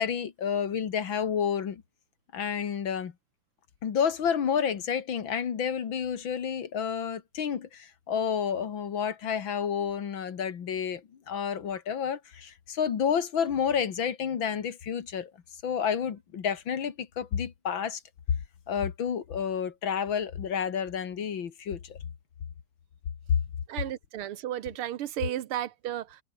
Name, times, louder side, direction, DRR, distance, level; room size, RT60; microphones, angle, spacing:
voice 1, 0.0-1.8 2.3-3.1 3.8-11.0 11.3-15.3 15.6-18.0 18.7-22.0, left 7 dB, 65° left, 2.4 m, -30 dB
voice 2, 23.7-26.2, right 12 dB, 85° right, 1.9 m, -34 dB
omnidirectional pair, 2.3 m